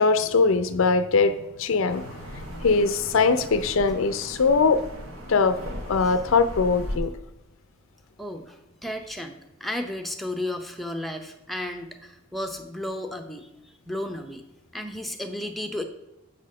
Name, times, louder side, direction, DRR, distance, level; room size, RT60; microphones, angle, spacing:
voice 1, 0.0-2.2 2.6-4.8 5.3-5.6 5.9-7.1, left 4 dB, 65° left, 10 dB, 0.5 m, -21 dB
sound 1, 1.9-7.0, equal, 80° right, 1.3 m, -37 dB
voice 2, 8.2-13.5 13.9-14.4 14.7-15.8, left 1 dB, ahead, 5 dB, 0.7 m, -33 dB
7.9 x 4.1 x 6.4 m, 0.93 s
head